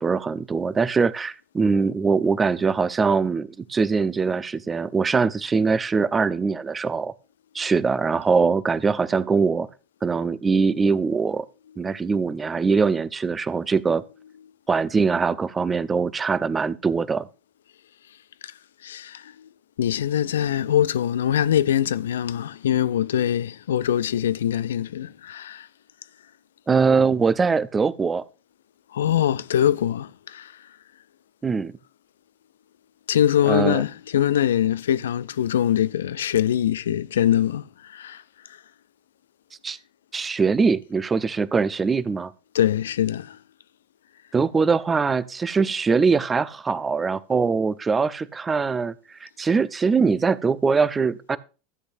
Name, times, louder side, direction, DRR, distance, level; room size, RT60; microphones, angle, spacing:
voice 1, 0.0-7.1 7.5-9.7 10.0-11.5 11.8-14.0 14.7-17.3 26.7-28.2 31.4-31.7 33.5-33.8 39.6-39.8 40.1-42.3 44.3-48.9 49.2-51.4, right 5 dB, 20° right, 0.7 m, -22 dB
voice 2, 18.8-19.5 19.8-25.7 28.9-30.7 33.1-38.2 38.5-38.6 42.5-43.4, left 10 dB, 75° left, 0.4 m, -23 dB
13.5 x 8.1 x 2.5 m
hypercardioid pair, 85°, 0 cm